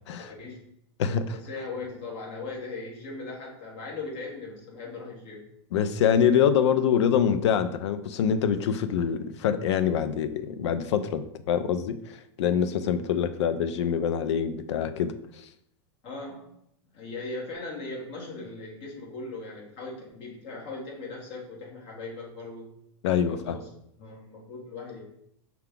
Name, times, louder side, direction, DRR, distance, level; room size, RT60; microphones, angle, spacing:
voice 1, 0.3-0.6 1.3-5.5 16.0-16.5 16.9-22.7 23.3-23.7 24.0-25.0, left 3 dB, 40° left, -2 dB, 1.3 m, -39 dB
voice 2, 1.0-1.4 5.7-15.4 23.0-23.6, left 8 dB, 80° left, 11 dB, 0.4 m, -25 dB
5.7 x 2.3 x 3.6 m, 0.73 s
supercardioid pair, 150°, 14 cm